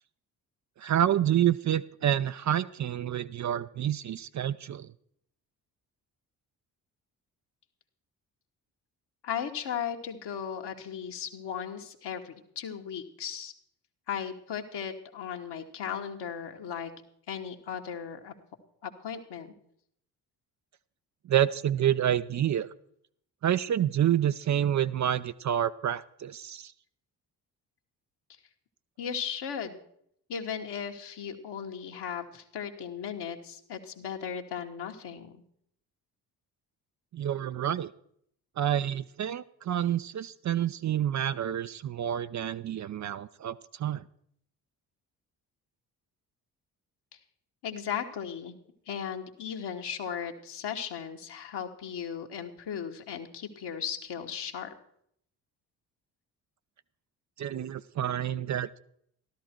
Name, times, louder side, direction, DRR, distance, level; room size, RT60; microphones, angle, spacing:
voice 1, 0.8-4.9 21.3-22.7 23.4-26.7 37.1-37.9 38.6-44.0 57.4-58.8, right 10 dB, 40° right, 13 dB, 0.5 m, -28 dB
voice 2, 9.2-13.5 14.1-16.9 17.3-18.3 18.8-19.5 29.0-29.8 30.3-35.4 47.6-48.6 48.9-54.7, left 8 dB, 55° left, 3 dB, 1.7 m, -36 dB
13.0 x 13.0 x 4.5 m, 0.68 s
hypercardioid pair, 45°, 47 cm